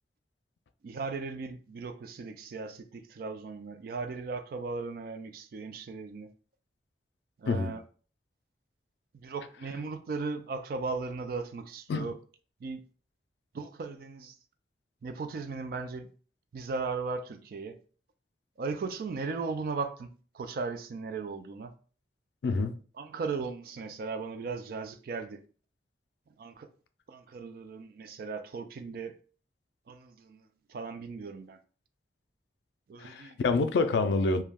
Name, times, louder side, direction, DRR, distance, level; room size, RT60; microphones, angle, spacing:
voice 1, 0.8-6.3 7.4-7.8 9.1-12.2 12.6-12.8 13.5-14.4 15.0-16.1 16.5-17.8 18.6-21.7 23.0-25.4 26.4-26.7 27.1-29.2 29.9-30.4 30.7-31.6 32.9-33.4, right 4 dB, 55° right, 0.3 m, -37 dB
voice 2, 22.4-22.7 33.0-34.4, left 3 dB, 75° left, 0.3 m, -27 dB
2.3 x 2.2 x 3.3 m
head